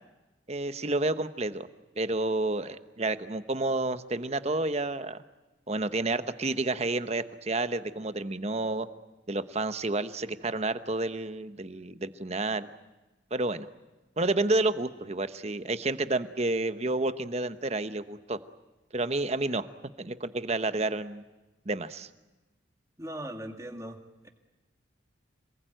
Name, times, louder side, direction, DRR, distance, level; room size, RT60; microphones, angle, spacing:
voice 1, 0.5-1.7 2.0-5.2 5.7-8.9 9.3-12.7 13.3-13.7 14.2-18.4 18.9-19.7 20.0-21.2 21.7-22.1, right 2 dB, 35° right, 11 dB, 1.0 m, -30 dB
voice 2, 23.0-24.0 24.2-24.3, right 1 dB, 15° right, 4 dB, 2.1 m, -39 dB
27.5 x 20.0 x 9.1 m, 1.1 s
head